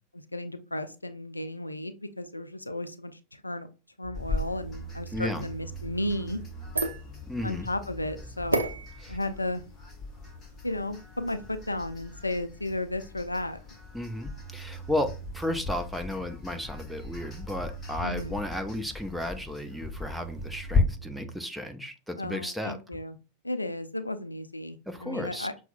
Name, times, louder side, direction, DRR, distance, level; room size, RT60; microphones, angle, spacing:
voice 1, 0.1-3.7 4.0-6.4 7.4-8.7 9.1-9.6 10.6-13.6 18.0-18.4 22.2-23.2 23.4-25.5, left 1 dB, 85° left, 0.3 m, -34 dB
sound 1, 4.0-9.0 14.3-21.4, right 5 dB, 20° right, 1.7 m, -44 dB
sound 2, 4.1-20.8, left 4 dB, 20° left, 1.1 m, -37 dB
voice 2, 5.1-5.5 7.3-7.7 9.0-9.2 13.9-22.8 24.9-25.5, left 1 dB, ahead, 0.5 m, -34 dB
sound 3, 6.3-12.5, right 2 dB, 85° right, 0.5 m, -36 dB
5.7 x 2.0 x 2.5 m
figure-of-eight pair, 90°, 0 cm